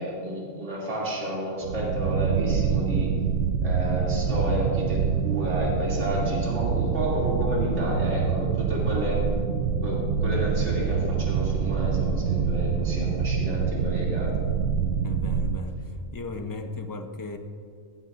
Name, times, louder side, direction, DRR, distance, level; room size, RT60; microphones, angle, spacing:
voice 1, 0.0-3.1 3.6-9.2 9.8-14.3, equal, 60° right, -5 dB, 3.0 m, -30 dB
sound 1, 1.6-15.6, right 6 dB, 85° right, 1.0 m, -26 dB
voice 2, 14.1-14.4 15.0-17.4, left 3 dB, 25° left, 7 dB, 0.4 m, -37 dB
15.5 x 15.0 x 2.5 m, 2.3 s
omnidirectional pair, 1.4 m